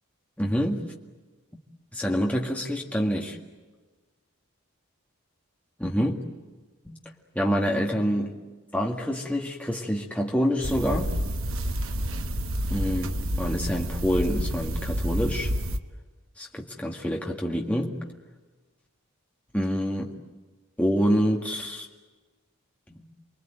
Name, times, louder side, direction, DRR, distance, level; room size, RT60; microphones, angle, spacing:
voice 1, 0.4-0.9 1.9-3.4 5.8-6.2 6.8-7.0 7.4-8.3 8.7-11.1 12.7-15.5 16.4-18.0 19.5-20.1 20.8-21.9, equal, 5° left, 0 dB, 1.9 m, -26 dB
sound 1, 10.6-15.8, equal, 70° right, 1.2 m, -29 dB
28.5 x 22.5 x 9.1 m, 1.3 s
head